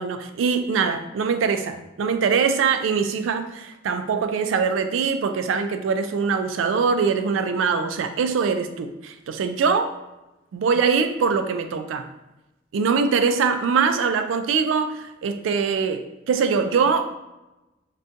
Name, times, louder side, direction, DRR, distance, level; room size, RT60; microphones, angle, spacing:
voice 1, 0.0-9.9 10.5-12.1 12.7-17.1, right 5 dB, 85° right, 8 dB, 0.3 m, -23 dB
3.6 x 2.3 x 2.6 m, 1.0 s
head